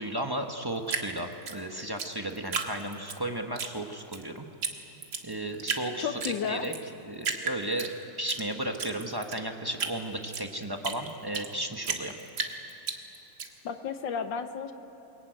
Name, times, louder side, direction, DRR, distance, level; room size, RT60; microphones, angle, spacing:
voice 1, 0.0-4.5 5.2-6.7 7.0-7.9 8.2-12.1, right 1 dB, 20° right, 4 dB, 0.7 m, -34 dB
Drip, 0.9-3.2 3.6-4.2 4.6-4.7 5.0-5.8 6.2-6.8 7.2-8.4 8.7-11.5 11.8-13.5, right 5 dB, 50° right, 2.1 m, -33 dB
voice 2, 6.0-6.7 13.6-14.7, left 7 dB, 65° left, 8 dB, 1.6 m, -32 dB
23.5 x 22.0 x 9.2 m, 2.9 s
omnidirectional pair, 2.4 m